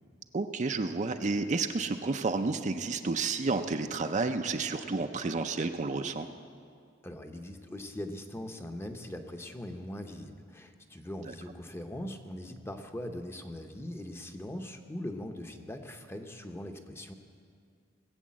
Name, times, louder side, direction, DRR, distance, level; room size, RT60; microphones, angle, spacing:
voice 1, 0.3-6.3, right 3 dB, 40° right, 7 dB, 0.5 m, -31 dB
voice 2, 7.0-17.1, left 1 dB, 15° left, 5 dB, 0.8 m, -41 dB
20.0 x 8.0 x 7.5 m, 2.2 s
head